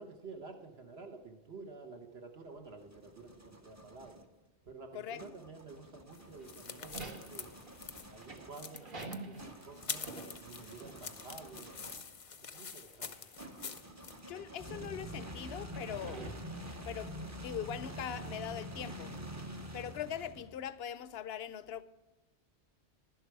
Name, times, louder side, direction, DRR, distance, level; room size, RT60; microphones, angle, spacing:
voice 1, 0.0-4.2 4.6-7.5 8.1-11.9 12.5-13.2 14.1-14.2, right 4 dB, 65° right, 1.5 m, -51 dB
sound 1, 2.5-4.3 5.2-12.2 13.4-20.7, equal, 15° right, 0.7 m, -47 dB
sound 2, 6.1-14.2, left 6 dB, 40° left, 0.5 m, -46 dB
sound 3, 6.4-11.3 11.5-11.7 12.7-13.5 14.2-14.3 15.6-17.1, right 3 dB, 50° right, 1.5 m, -47 dB
voice 2, 14.3-16.2 16.8-17.1 17.4-19.2 19.7-21.8, left 9 dB, 70° left, 0.8 m, -41 dB
11.5 x 11.0 x 4.7 m
omnidirectional pair, 1.1 m